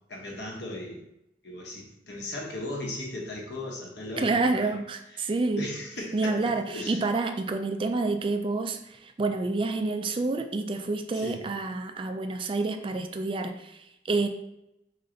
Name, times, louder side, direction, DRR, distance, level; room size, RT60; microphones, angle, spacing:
voice 1, 0.1-1.0 1.4-4.7 5.2-5.3 5.6-7.0 11.1-11.4, left 1 dB, 75° left, -1 dB, 1.1 m, -37 dB
voice 2, 4.2-5.7 6.1-14.3, right 3 dB, 30° right, 7 dB, 0.3 m, -28 dB
4.0 x 3.2 x 3.8 m, 0.86 s
head